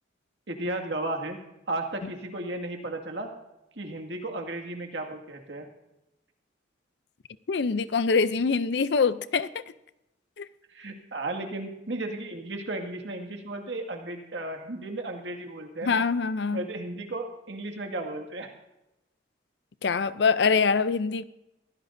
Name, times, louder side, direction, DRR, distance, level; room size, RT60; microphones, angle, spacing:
voice 1, 0.5-1.4 1.7-3.3 3.8-5.7 10.7-16.0 16.5-18.5, right 2 dB, 75° right, 2.0 m, -34 dB
voice 2, 7.5-9.6 10.4-10.5 15.8-16.6 19.8-21.2, left 5 dB, 65° left, 0.5 m, -24 dB
23.5 x 16.0 x 2.6 m
head